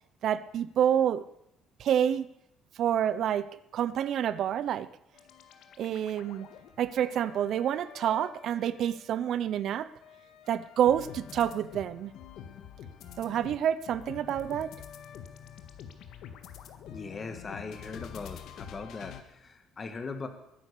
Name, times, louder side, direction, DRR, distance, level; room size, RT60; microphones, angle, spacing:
voice 1, 0.2-1.3 1.8-2.3 2.8-4.9 5.8-6.5 6.8-9.9 10.5-12.1 13.2-14.7, right 9 dB, 50° right, 16 dB, 0.7 m, -28 dB
sound 1, 5.1-9.2 9.7-19.2, left 8 dB, 65° left, 1.7 m, -47 dB
voice 2, 16.9-20.3, left 4 dB, 25° left, 7 dB, 1.6 m, -40 dB
22.0 x 9.9 x 6.8 m, 0.81 s
cardioid pair, 155°, 0 cm